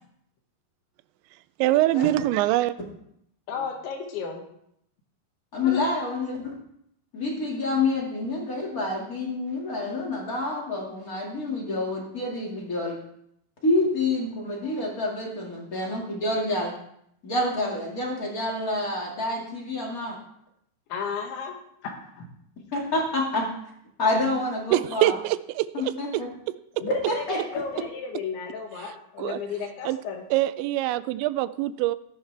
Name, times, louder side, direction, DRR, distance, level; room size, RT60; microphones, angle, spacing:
voice 1, 1.6-2.8 24.7-26.8 29.2-29.4 29.9-30.0 30.3-32.0, right 15 dB, 90° right, 15 dB, 2.9 m, -24 dB
voice 2, 3.5-4.4 5.6-5.8 20.9-21.5 21.8-22.3 26.7-30.2, left 6 dB, 85° left, 2 dB, 4.2 m, -33 dB
voice 3, 5.5-6.5 7.1-13.0 13.6-16.7 17.2-20.1 22.7-23.5 24.0-25.1 25.7-26.3 27.1-27.8, left 2 dB, 30° left, -2 dB, 1.6 m, -28 dB
15.5 x 10.0 x 3.4 m, 0.73 s
omnidirectional pair, 5.1 m